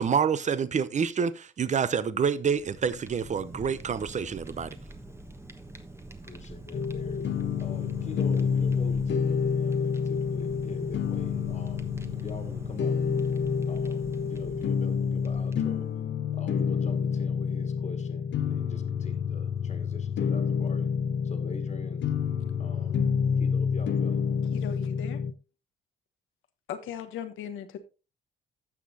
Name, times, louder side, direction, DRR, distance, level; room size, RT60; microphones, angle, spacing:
voice 1, 0.0-4.8, right 6 dB, 35° right, 0.7 m, -27 dB
Fire, 2.4-15.9, right 1 dB, 15° right, 1.2 m, -44 dB
voice 2, 6.2-7.3 7.6-13.3 13.7-15.9 16.3-20.9 21.2-22.1 22.6-23.0 23.3-24.2, left 4 dB, 35° left, 1.9 m, -44 dB
sound 1, 6.7-25.3, left 6 dB, 65° left, 1.0 m, -28 dB
voice 3, 24.5-25.2 26.7-27.8, left 8 dB, 85° left, 1.2 m, -37 dB
16.0 x 6.2 x 2.7 m
cardioid pair, 90°, 20 cm